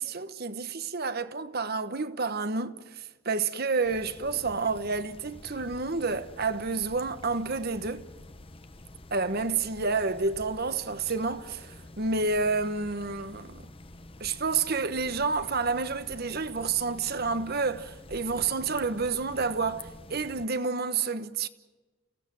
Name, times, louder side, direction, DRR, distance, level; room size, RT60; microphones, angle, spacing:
voice 1, 0.0-8.1 9.1-13.6 14.2-21.5, right 4 dB, 45° right, 1.2 m, -29 dB
sound 1, 3.8-20.5, left 2 dB, 25° left, 1.0 m, -48 dB
29.5 x 17.0 x 7.6 m
head